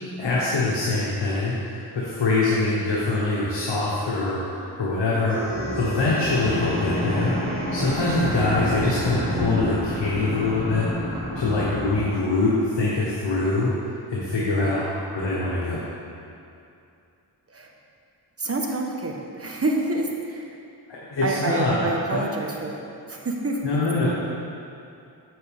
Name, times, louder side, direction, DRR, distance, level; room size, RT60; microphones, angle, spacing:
voice 1, 0.2-5.4 5.7-10.9 11.3-13.7 14.1-14.9 15.1-15.8 21.1-21.7 22.1-22.2 23.6-24.1, left 3 dB, 75° left, -6 dB, 1.3 m, -24 dB
sound 1, 4.5-12.0, equal, 70° right, 1.8 m, -29 dB
voice 2, 8.5-8.9 14.5-14.7 17.5-17.7 18.4-20.6 21.2-22.8 23.1-23.8, right 2 dB, 35° right, 1 dB, 1.2 m, -28 dB
7.7 x 7.7 x 3.6 m, 2.6 s
cardioid pair, 45°, 43 cm